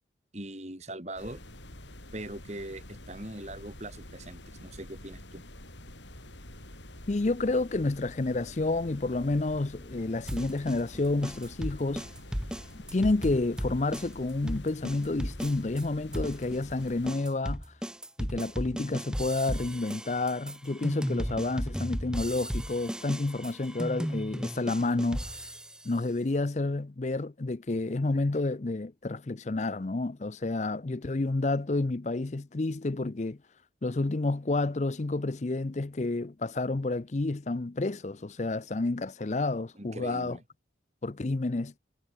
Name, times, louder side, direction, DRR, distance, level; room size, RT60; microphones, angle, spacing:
voice 1, 0.3-1.4 2.1-5.4 39.8-40.4, right 1 dB, 35° right, 3.5 m, -41 dB
sound 1, 1.2-17.1, left 1 dB, 75° left, 7.7 m, -47 dB
voice 2, 7.1-12.1 12.7-17.6 18.2-25.5 25.8-33.4 33.8-40.4 41.0-41.7, left 2 dB, 40° left, 0.6 m, -30 dB
sound 2, 10.3-15.9 16.1-25.9, equal, 5° right, 1.4 m, -35 dB
head